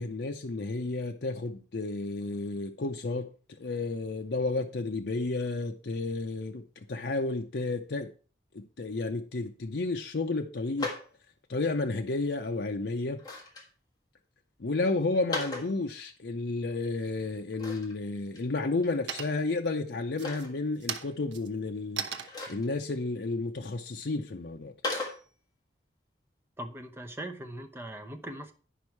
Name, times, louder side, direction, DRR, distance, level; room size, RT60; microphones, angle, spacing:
voice 1, 0.0-3.3 3.6-8.1 8.5-10.9 11.5-13.2 14.6-24.7, left 3 dB, 65° left, 3 dB, 0.6 m, -32 dB
sound 1, 10.8-11.1 13.1-13.7 15.1-15.7 17.5-17.9 18.3-18.4 18.8-18.9 20.2-20.5 22.3-22.7 24.8-25.2, left 3 dB, 20° left, 1.6 m, -35 dB
sound 2, 17.4-18.0 18.4-18.8 19.1-19.6 20.1-24.5, right 7 dB, 80° right, 0.8 m, -40 dB
voice 2, 26.6-28.5, right 1 dB, 10° right, 4 dB, 0.8 m, -40 dB
10.0 x 5.3 x 4.6 m, 0.39 s
head